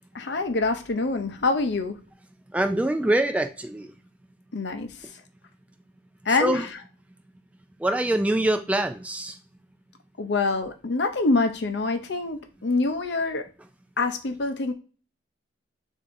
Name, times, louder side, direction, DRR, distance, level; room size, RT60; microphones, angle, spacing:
voice 1, 0.1-2.0 4.5-4.9 6.3-6.6 10.2-13.4 14.0-14.7, left 3 dB, 65° left, 8 dB, 0.6 m, -25 dB
voice 2, 2.5-3.9 6.3-6.7 7.8-9.4, right 1 dB, 5° right, 7 dB, 0.3 m, -24 dB
6.7 x 2.7 x 2.6 m, 0.37 s
head